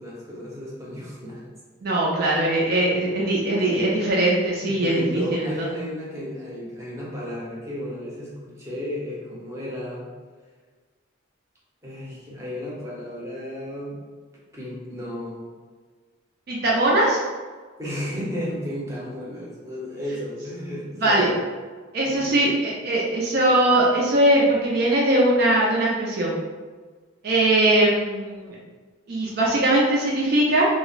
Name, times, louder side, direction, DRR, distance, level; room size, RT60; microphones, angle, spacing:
voice 1, 0.0-1.4 3.6-3.9 4.6-10.1 11.8-14.0 14.5-15.4 17.8-21.3 22.0-22.4, left 1 dB, 15° right, -6 dB, 0.7 m, -33 dB
voice 2, 1.8-5.2 5.6-5.7 16.5-17.2 21.0-21.3 21.9-26.3 27.2-28.5 29.1-30.7, right 1 dB, 50° right, -4 dB, 0.4 m, -20 dB
2.3 x 2.1 x 3.8 m, 1.4 s
head